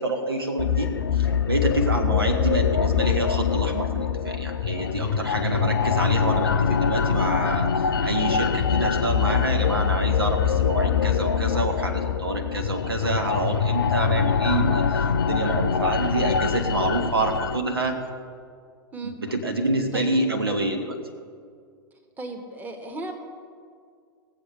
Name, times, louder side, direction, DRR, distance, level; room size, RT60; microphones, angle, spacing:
voice 1, 0.0-7.7 8.0-18.0 19.0-21.0, right 2 dB, 80° right, 4 dB, 1.4 m, -27 dB
sound 1, 0.6-17.6, left 6 dB, 75° left, 0.6 m, -24 dB
voice 2, 22.2-23.1, right 2 dB, 15° right, 2 dB, 1.5 m, -35 dB
19.0 x 7.3 x 5.7 m, 2.1 s
figure-of-eight pair, 95°, 12 cm